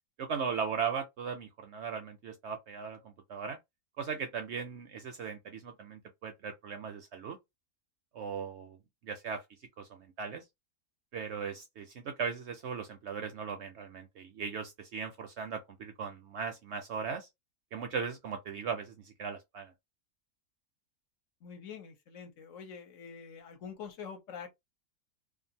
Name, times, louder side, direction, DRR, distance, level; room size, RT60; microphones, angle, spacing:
voice 1, 0.2-3.6 4.0-7.4 8.1-8.8 9.0-9.4 9.8-10.4 11.1-17.3 17.7-19.7, right 6 dB, 65° right, 0.7 m, -38 dB
voice 2, 21.4-24.5, left 6 dB, 65° left, 0.9 m, -45 dB
2.5 x 2.4 x 2.7 m
omnidirectional pair, 1.5 m